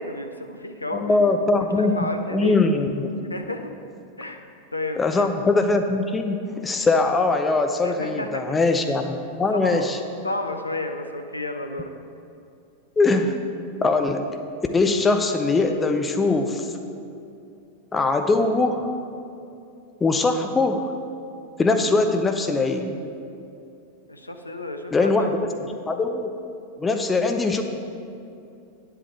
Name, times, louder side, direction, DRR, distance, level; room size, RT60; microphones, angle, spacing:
voice 1, 0.0-2.6 3.3-3.7 4.2-4.4 4.7-5.3 7.8-8.4 9.6-9.8 10.2-11.9 24.1-25.7, left 1 dB, 85° left, 5 dB, 0.5 m, -32 dB
voice 2, 0.9-3.1 5.0-10.0 13.0-13.4 13.8-14.2 14.7-16.7 17.9-18.9 20.0-20.9 21.6-23.0 24.9-25.5 25.9-26.3 26.8-27.6, left 3 dB, 15° left, 5 dB, 0.6 m, -21 dB
9.7 x 7.8 x 4.6 m, 2.6 s
figure-of-eight pair, 90°, 0 cm